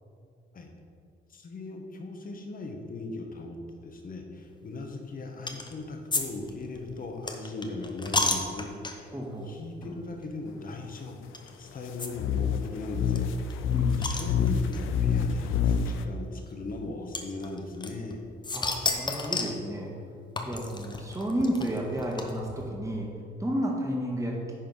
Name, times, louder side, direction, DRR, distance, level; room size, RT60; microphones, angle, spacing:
voice 1, 1.3-9.1 9.4-13.3 14.0-18.2, left 3 dB, 45° left, 3 dB, 1.4 m, -38 dB
sound 1, 5.5-5.7 6.1-9.2 9.8-10.0 10.2-10.3 11.3-11.5 12.0-12.1 12.4-12.5 12.6-12.7 13.1-14.8 15.7-15.8 17.1-18.1 18.4-19.6 20.4-22.6, left 3 dB, 20° left, 1.0 m, -31 dB
voice 2, 9.1-9.6 13.7-14.2 18.5-19.9 20.5-23.1 23.4-24.4, equal, 15° right, -2 dB, 2.0 m, -31 dB
sound 2, 12.1-16.1, left 7 dB, 85° left, 0.6 m, -27 dB
10.5 x 4.4 x 5.6 m, 2.4 s
cardioid pair, 90°, 20 cm